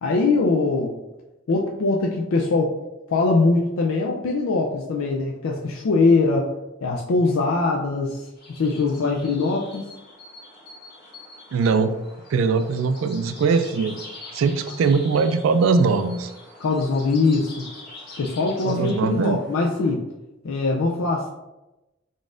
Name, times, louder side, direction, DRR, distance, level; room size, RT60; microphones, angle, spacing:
voice 1, 0.0-0.9 1.5-2.8 3.1-6.5 6.8-8.2 8.6-9.8 16.6-17.7 18.2-20.0 20.4-21.3, left 3 dB, 85° left, 0 dB, 0.4 m, -22 dB
sound 1, 8.4-19.9, left 2 dB, 50° left, 1.5 m, -44 dB
voice 2, 11.5-12.0 12.3-14.0 14.3-16.3 18.6-19.4, right 4 dB, 75° right, 10 dB, 0.3 m, -21 dB
3.9 x 3.7 x 2.5 m, 1.0 s
head